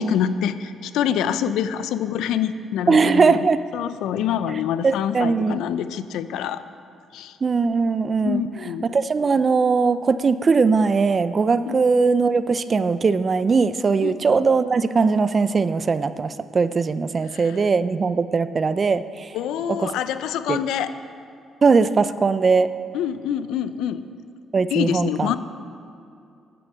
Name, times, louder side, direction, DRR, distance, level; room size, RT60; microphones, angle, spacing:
voice 1, 0.0-3.5 3.7-6.6 7.1-7.4 8.2-8.8 11.7-11.8 14.0-14.2 17.3-17.6 19.3-20.9 22.9-24.1 24.7-25.4, left 9 dB, 90° left, 13 dB, 0.5 m, -26 dB
voice 2, 2.9-3.6 4.8-5.6 7.4-8.4 8.9-19.3 19.8-19.9 20.5-20.6 21.6-22.7 24.5-25.3, right 4 dB, 40° right, 13 dB, 0.5 m, -20 dB
10.0 x 8.6 x 7.3 m, 2.5 s
cardioid pair, 90°, 0 cm